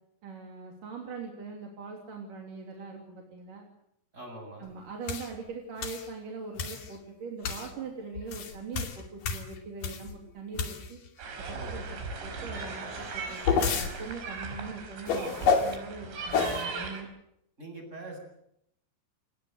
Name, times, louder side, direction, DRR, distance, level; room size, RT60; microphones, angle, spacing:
voice 1, 0.2-3.6 4.6-11.0 11.4-17.1, right 4 dB, 50° right, 1 dB, 4.3 m, -42 dB
voice 2, 4.1-4.7 11.5-11.7 17.6-18.2, right 2 dB, 15° right, 4 dB, 8.0 m, -43 dB
sound 1, 5.1-5.3 5.8-6.1 6.6-6.9 7.4-7.7 8.2-10.1 10.5-11.1 13.0-13.9 15.1-15.8 16.3-16.6, left 5 dB, 50° left, 3.8 m, -29 dB
sound 2, 11.2-17.0, right 4 dB, 80° right, 7.0 m, -38 dB
29.5 x 19.5 x 8.0 m, 0.77 s
omnidirectional pair, 5.3 m